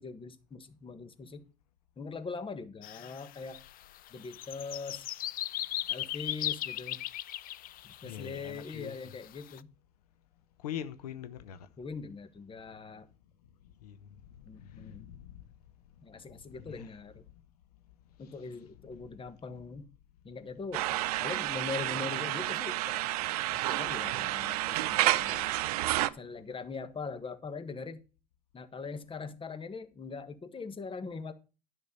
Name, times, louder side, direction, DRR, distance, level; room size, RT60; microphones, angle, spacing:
voice 1, 0.0-1.5 2.0-3.6 4.1-5.1 5.9-7.0 7.8-9.7 11.8-13.1 14.4-15.1 16.0-17.2 18.2-19.9 20.2-20.8 21.2-23.0 23.5-25.6 26.1-28.0 28.5-31.3, left 4 dB, 25° left, 1.5 m, -41 dB
sound 1, 2.8-9.6, left 14 dB, 50° left, 0.6 m, -38 dB
voice 2, 8.0-9.0 10.6-11.7 13.8-14.0 14.4-15.4 16.6-16.9 18.2-18.3 18.9-19.0, left 10 dB, 85° left, 0.8 m, -43 dB
sound 2, 20.7-26.1, right 16 dB, 80° right, 0.6 m, -30 dB
11.0 x 5.9 x 5.5 m
hypercardioid pair, 75°, 19 cm